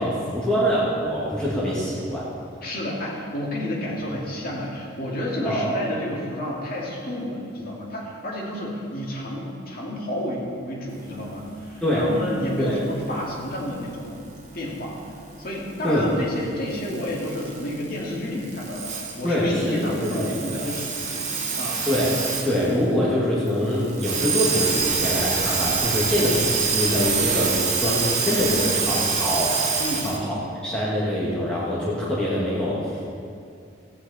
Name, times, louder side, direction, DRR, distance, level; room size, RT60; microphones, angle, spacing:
voice 1, 0.0-2.3 5.4-5.7 11.8-12.1 12.6-12.7 15.8-16.1 19.2-20.6 21.9-22.1 22.4-29.8 30.0-30.4 30.6-33.0, equal, 5° left, -8 dB, 1.8 m, -24 dB
voice 2, 2.6-15.0 15.4-21.3 21.6-21.8 29.8-30.1, left 1 dB, 50° left, -4 dB, 2.3 m, -31 dB
sound 1, 12.6-22.8 23.2-23.3 23.5-30.2, right 5 dB, 40° right, 2.1 m, -26 dB
14.5 x 9.3 x 4.2 m, 2.4 s
head